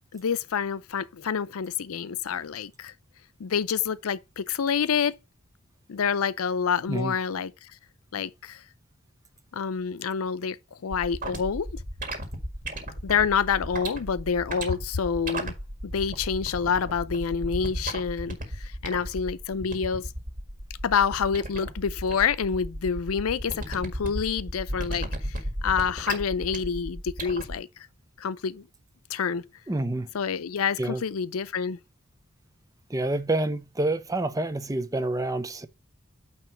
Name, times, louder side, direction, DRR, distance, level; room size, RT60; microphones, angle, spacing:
voice 1, 0.1-2.9 3.4-5.2 5.9-7.5 8.1-8.6 9.5-10.6 10.8-11.7 13.0-15.5 15.8-20.1 20.8-25.4 25.6-27.7 28.2-28.7 29.1-29.5 30.1-31.8, left 6 dB, 85° left, 0.5 m, -27 dB
sound 1, 10.9-27.6, right 1 dB, 40° right, 1.8 m, -34 dB
voice 2, 29.7-30.1 30.8-31.0 32.9-35.7, right 2 dB, 15° right, 0.6 m, -28 dB
9.0 x 3.0 x 5.6 m
head